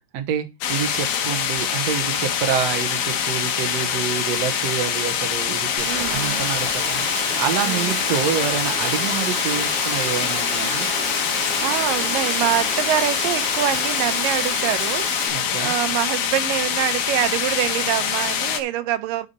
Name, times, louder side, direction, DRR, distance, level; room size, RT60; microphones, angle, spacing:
voice 1, 0.1-10.9 15.3-15.8, right 8 dB, 60° right, 2.1 m, -27 dB
sound 1, 0.6-18.6, left 8 dB, 85° left, 3.0 m, -24 dB
Rain, 5.8-15.3, right 1 dB, 40° right, 5.2 m, -30 dB
voice 2, 5.9-6.4 7.6-7.9 11.6-19.3, right 12 dB, 90° right, 2.4 m, -25 dB
10.5 x 6.0 x 4.2 m
omnidirectional pair, 3.9 m